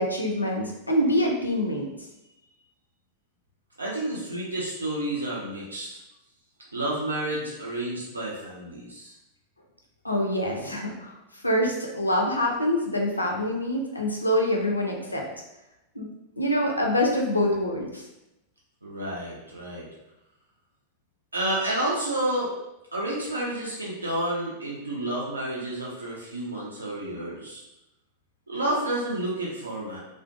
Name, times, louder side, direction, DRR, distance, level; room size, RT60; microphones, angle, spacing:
voice 1, 0.0-1.9 10.0-11.2 11.4-15.2 16.0-16.1 16.4-18.0, left 1 dB, 85° left, 0 dB, 0.4 m, -25 dB
voice 2, 3.8-5.9 6.7-9.1 18.8-19.8 21.3-22.5 22.9-27.6 28.5-30.0, right 1 dB, 80° right, -5 dB, 0.5 m, -30 dB
2.4 x 2.1 x 2.5 m, 0.92 s
figure-of-eight pair, 90°, 0 cm